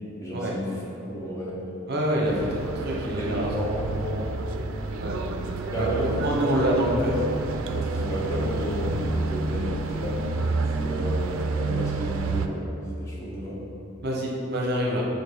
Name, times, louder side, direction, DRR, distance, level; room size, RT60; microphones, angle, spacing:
voice 1, 0.2-0.7 1.1-1.5 2.3-2.4 2.8-4.2 5.7-6.1 6.4-7.1 7.7-10.2 10.7-12.7 13.0-13.6, equal, 15° left, -7 dB, 1.1 m, -32 dB
voice 2, 1.9-2.5 2.8-3.5 4.1-4.2 5.0-5.2 5.8-7.2 14.0-15.1, equal, 50° right, -2 dB, 0.8 m, -26 dB
sound 1, 2.3-12.5, right 3 dB, 85° right, 0.4 m, -29 dB
5.2 x 4.5 x 4.7 m, 2.9 s
head